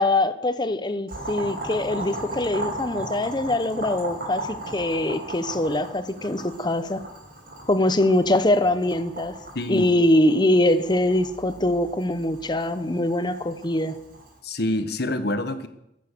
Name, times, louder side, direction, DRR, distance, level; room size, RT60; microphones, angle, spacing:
voice 1, 0.0-7.0 7.7-9.4 9.7-14.0, left 1 dB, 25° left, 12 dB, 0.9 m, -23 dB
Boiling, 1.1-14.3, right 1 dB, 55° right, 6.1 m, -37 dB
voice 2, 9.5-9.9 14.4-15.7, left 1 dB, 65° left, 11 dB, 1.4 m, -26 dB
14.5 x 11.0 x 6.8 m, 0.81 s
head